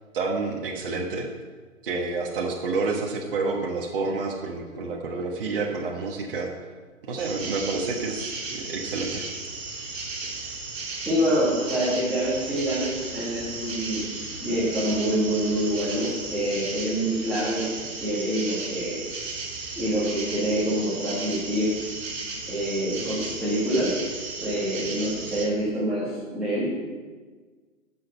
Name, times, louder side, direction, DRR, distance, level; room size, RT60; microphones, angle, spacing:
voice 1, 0.1-1.3 1.8-6.5 7.1-9.2, right 3 dB, 40° right, 0 dB, 1.4 m, -29 dB
sound 1, 7.2-25.5, right 3 dB, 60° right, 4.0 m, -35 dB
voice 2, 11.1-17.7 18.0-19.0 19.8-21.9 22.5-23.9 24.4-26.7, equal, ahead, -14 dB, 1.7 m, -26 dB
14.5 x 6.4 x 5.6 m, 1.5 s
hypercardioid pair, 170°, 41 cm